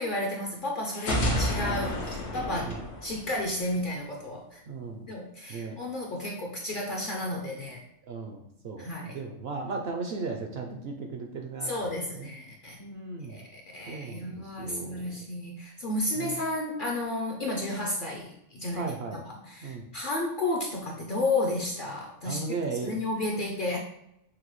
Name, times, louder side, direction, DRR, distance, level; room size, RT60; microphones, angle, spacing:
voice 1, 0.0-4.6 5.1-7.8 8.8-9.2 11.6-12.8 13.3-23.8, left 1 dB, 55° left, 0 dB, 0.6 m, -32 dB
sound 1, 0.9-3.8, equal, 75° left, 1.3 m, -30 dB
voice 2, 4.7-5.1 5.5-5.8 8.1-12.3 12.8-13.4 13.9-15.0 16.2-16.4 18.7-19.2 19.6-19.9 22.2-23.0, right 4 dB, 65° right, 3 dB, 0.7 m, -36 dB
6.0 x 2.2 x 3.0 m, 0.80 s
omnidirectional pair, 1.3 m